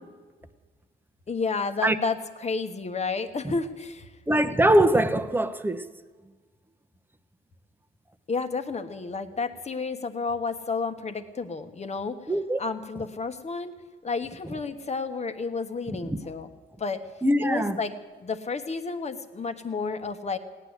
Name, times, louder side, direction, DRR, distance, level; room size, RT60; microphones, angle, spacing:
voice 1, 1.3-4.1 8.3-12.2 12.6-13.7 14.0-16.5 16.8-17.0 17.4-17.9 18.2-20.4, left 4 dB, 35° left, 1.3 m, -31 dB
voice 2, 4.3-5.8 12.3-12.6 16.1-16.2 17.2-17.7, right 1 dB, 10° right, 1.0 m, -22 dB
17.0 x 9.8 x 8.1 m
cardioid pair, 90°, 20 cm